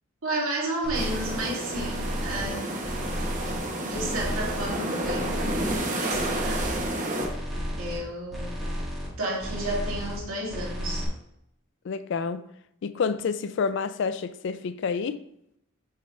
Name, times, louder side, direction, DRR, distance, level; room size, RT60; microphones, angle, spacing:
voice 1, 0.2-2.7 3.8-6.6 7.8-8.6 9.2-11.1, right 1 dB, 80° right, 2.3 m, -32 dB
sound 1, 0.8-1.4 1.7-2.5 2.8-3.6 3.9-4.7 5.0-5.8 6.1-6.9 7.2-8.0 8.3-9.1 9.4-10.2 10.5-11.1, equal, ahead, 2.0 m, -33 dB
sound 2, 0.9-7.3, right 1 dB, 40° right, 0.9 m, -31 dB
voice 2, 11.8-12.4 12.8-15.2, left 5 dB, 60° left, 0.3 m, -28 dB
6.8 x 4.6 x 3.1 m
head